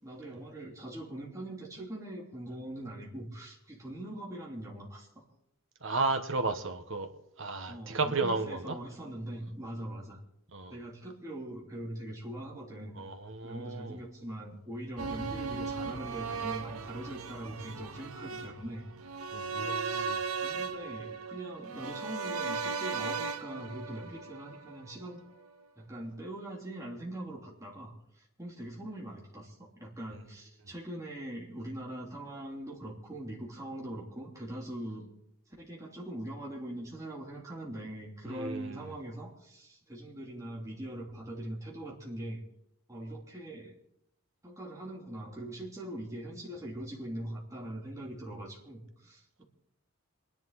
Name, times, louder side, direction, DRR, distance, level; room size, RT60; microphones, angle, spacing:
voice 1, 0.0-5.2 7.6-10.2 10.7-13.0 13.4-18.8 19.6-20.1 20.4-25.2 25.8-35.1 35.6-42.4 42.9-43.7 44.4-49.4, right 1 dB, 15° right, 3.2 m, -42 dB
voice 2, 5.8-7.1 7.4-8.8 10.5-10.7 12.9-14.0 19.3-20.2 38.2-38.8, right 3 dB, 65° right, 1.4 m, -33 dB
sound 1, 15.0-25.1 25.4-25.5, right 4 dB, 90° right, 0.9 m, -37 dB
27.0 x 10.5 x 4.1 m
head